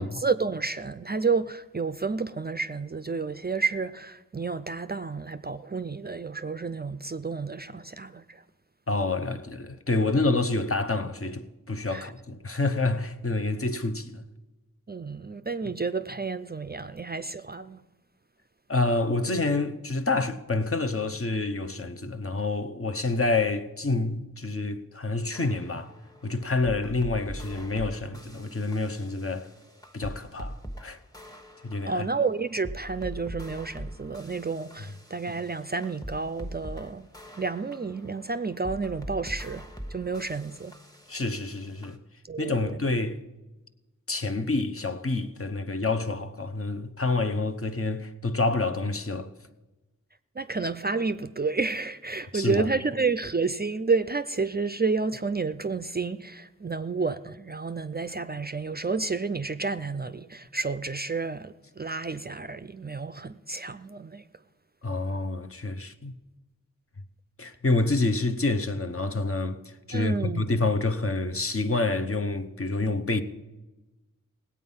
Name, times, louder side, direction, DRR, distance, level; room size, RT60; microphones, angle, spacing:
voice 1, 0.0-8.4 11.9-12.1 14.9-17.8 31.9-37.1 37.4-40.8 42.3-42.8 50.4-64.2 69.9-70.5, right 4 dB, 30° right, 0.4 m, -30 dB
voice 2, 8.9-14.2 18.7-25.9 26.2-29.5 29.9-31.0 31.6-32.0 41.1-42.0 42.4-43.2 44.1-49.3 52.3-52.7 64.8-66.1 67.4-73.2, left 3 dB, 45° left, 0.8 m, -28 dB
sound 1, 25.3-41.9, equal, 10° left, 1.2 m, -42 dB
18.5 x 8.5 x 5.5 m
wide cardioid pair, 60°, 32 cm